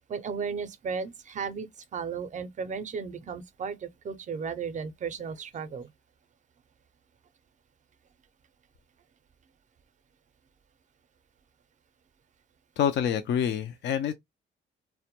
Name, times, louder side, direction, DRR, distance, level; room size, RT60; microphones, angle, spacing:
voice 1, 0.1-5.9, right 6 dB, 40° right, 0.5 m, -35 dB
voice 2, 12.8-14.1, left 8 dB, 65° left, 0.4 m, -27 dB
2.1 x 2.1 x 2.8 m
cardioid pair, 90°, 20 cm